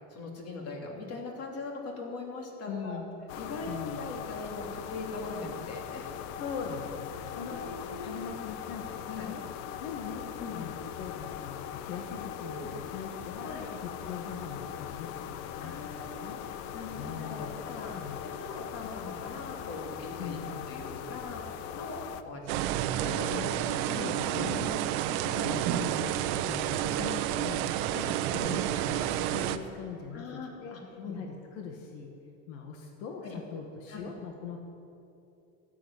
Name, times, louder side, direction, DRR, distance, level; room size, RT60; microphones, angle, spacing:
voice 1, 0.1-3.0 3.3-6.1 7.1-8.2 9.1-9.3 10.4-10.6 12.4-12.7 13.4-13.7 15.6-16.3 16.7-23.6 23.9-24.7 25.1-25.2 26.3-26.4 27.9-28.1 30.1-31.2 33.2-33.4 33.9-34.1, left 3 dB, 40° left, 0 dB, 3.1 m, -41 dB
voice 2, 2.7-3.1 3.7-4.1 6.4-9.4 9.8-10.2 10.5-13.5 13.8-16.4 17.0-17.6 17.9-18.2 20.2-20.6 23.3-23.5 24.0-24.9 25.2-26.1 26.4-27.7 28.3-30.8 31.1-32.1 32.5-34.6, left 6 dB, 85° left, 2 dB, 1.8 m, -41 dB
sound 1, 3.3-22.2, left 9 dB, 65° left, 0.9 m, -40 dB
sound 2, 22.5-29.6, right 12 dB, 75° right, 0.9 m, -30 dB
13.0 x 8.6 x 9.7 m, 2.8 s
supercardioid pair, 135°, 37 cm